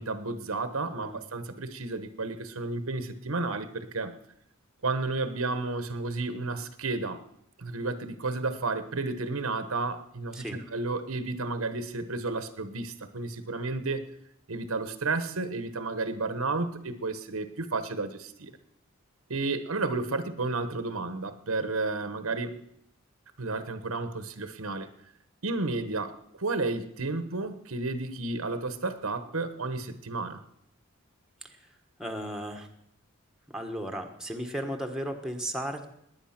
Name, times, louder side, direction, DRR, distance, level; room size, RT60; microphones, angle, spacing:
voice 1, 0.0-4.1 4.8-7.2 7.6-14.0 14.5-18.5 19.3-22.6 23.4-24.9 25.4-30.4, right 3 dB, 80° right, 10 dB, 1.2 m, -32 dB
voice 2, 32.0-32.7 33.5-35.9, equal, 5° right, 4 dB, 1.4 m, -35 dB
19.5 x 9.7 x 5.9 m, 0.76 s
head